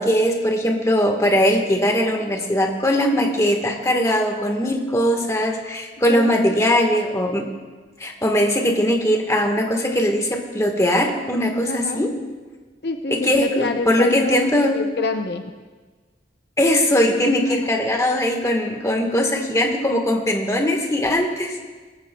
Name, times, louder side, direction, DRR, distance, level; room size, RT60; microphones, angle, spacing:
voice 1, 0.0-7.5 8.0-12.1 13.1-14.8 16.6-21.6, equal, 15° left, 2 dB, 1.4 m, -20 dB
voice 2, 6.1-6.4 11.7-12.0 12.8-15.5 17.5-17.7, left 3 dB, 60° left, 5 dB, 0.7 m, -27 dB
19.5 x 14.0 x 2.3 m, 1.4 s
head